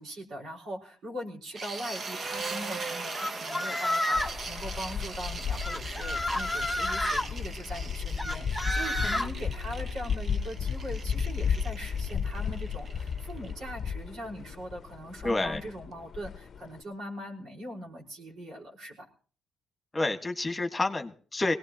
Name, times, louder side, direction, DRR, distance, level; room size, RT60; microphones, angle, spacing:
voice 1, 0.0-19.1, equal, 70° right, -1 dB, 5.3 m, -41 dB
sound 1, 1.5-13.5, right 3 dB, 45° right, 1.1 m, -40 dB
sound 2, 3.1-4.4 5.6-7.3 8.2-9.3, left 1 dB, 5° right, 1.6 m, -30 dB
sound 3, 4.2-16.8, left 7 dB, 50° left, 0.7 m, -34 dB
voice 2, 15.2-15.6 19.9-21.6, left 2 dB, 20° left, 6 dB, 1.7 m, -29 dB
21.0 x 18.0 x 3.0 m, 0.41 s
cardioid pair, 90°, 0 cm